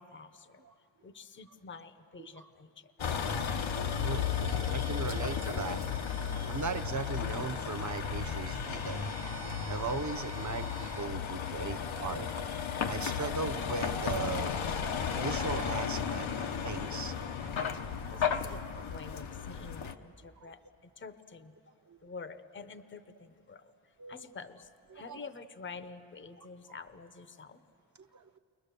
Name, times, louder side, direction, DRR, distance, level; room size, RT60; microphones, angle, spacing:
voice 1, 0.0-2.9 17.8-21.5 22.0-27.6, left 4 dB, 25° left, 11 dB, 0.7 m, -48 dB
Vehicle, 3.0-19.9, left 7 dB, 80° left, 1.0 m, -34 dB
Bowed string instrument, 3.7-11.1, right 7 dB, 55° right, 1.5 m, -52 dB
voice 2, 4.7-5.8 6.5-9.0 9.3-9.4 9.7-12.3 12.9-14.6 14.9-17.5 18.1-18.2 21.9-22.0 24.0-24.2 24.9-25.2 28.1-28.4, right 4 dB, 40° right, 8 dB, 0.8 m, -38 dB
29.0 x 22.5 x 6.8 m, 2.6 s
wide cardioid pair, 135°, 46 cm